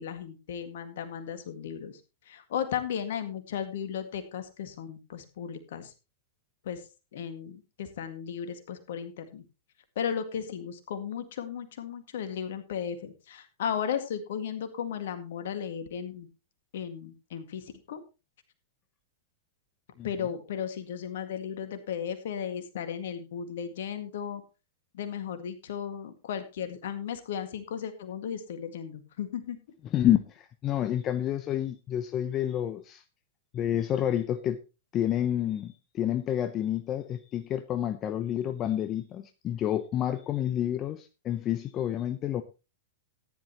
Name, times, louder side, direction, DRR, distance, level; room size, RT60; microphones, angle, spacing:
voice 1, 0.0-2.0 2.3-5.9 6.6-6.8 7.1-9.4 10.0-16.3 16.7-18.0 20.0-24.4 24.9-29.6, left 8 dB, 60° left, 9 dB, 2.0 m, -35 dB
voice 2, 29.9-33.0 33.5-34.6 34.9-42.4, left 11 dB, 30° left, 9 dB, 0.8 m, -29 dB
14.0 x 10.5 x 3.0 m, 0.29 s
figure-of-eight pair, 100°, 0 cm